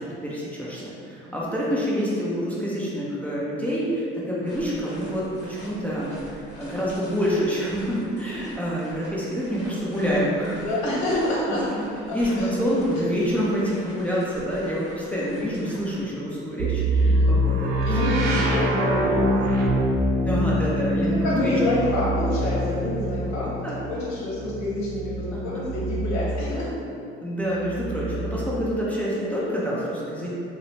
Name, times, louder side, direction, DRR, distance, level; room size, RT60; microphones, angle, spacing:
voice 1, 0.0-10.6 11.7-11.8 12.1-17.7 18.0-18.2 20.2-21.5 23.3-23.8 25.3-25.4 27.2-30.3, equal, 5° left, -7 dB, 0.6 m, -27 dB
sound 1, 4.4-16.1, left 1 dB, 20° left, 1.4 m, -46 dB
voice 2, 10.6-11.6 12.3-12.5 17.0-17.3 17.8-19.8 21.2-23.4 23.9-26.8, left 1 dB, 55° left, -6 dB, 1.0 m, -27 dB
sound 2, 16.6-26.4 27.4-28.5, equal, 55° right, 0.6 m, -25 dB
2.8 x 2.0 x 2.7 m, 2.5 s
hypercardioid pair, 60°, 32 cm